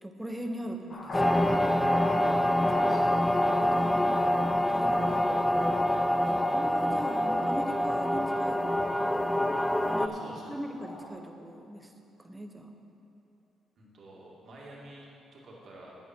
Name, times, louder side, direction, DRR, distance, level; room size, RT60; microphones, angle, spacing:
voice 1, 0.0-1.5 2.7-3.0 3.6-4.3 4.7-5.2 6.5-9.1 9.9-11.9 12.2-12.8, right 1 dB, 10° right, 4 dB, 1.0 m, -40 dB
sound 1, 0.9-11.1, left 1 dB, 45° left, 2.1 m, -38 dB
sound 2, 1.1-10.1, left 1 dB, 10° left, 0.3 m, -26 dB
voice 2, 2.6-3.5 3.8-4.2 5.1-6.4 10.0-10.6 13.8-15.9, right 1 dB, 55° right, -4 dB, 2.5 m, -50 dB
11.0 x 9.1 x 4.5 m, 2.7 s
cardioid pair, 90°, 0 cm